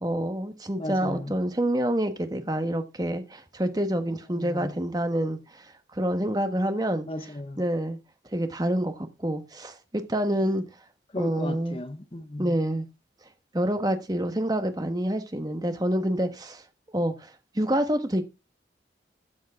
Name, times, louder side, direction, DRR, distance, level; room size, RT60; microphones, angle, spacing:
voice 1, 0.0-5.7 5.9-7.1 7.6-8.0 8.3-10.6 11.1-11.8 12.4-12.8 13.5-16.6 16.9-18.2, right 1 dB, 20° right, 1.3 m, -27 dB
voice 2, 0.8-1.3 4.3-4.7 7.1-7.6 11.1-12.6, left 1 dB, 30° left, 0.8 m, -35 dB
14.5 x 7.5 x 3.7 m
head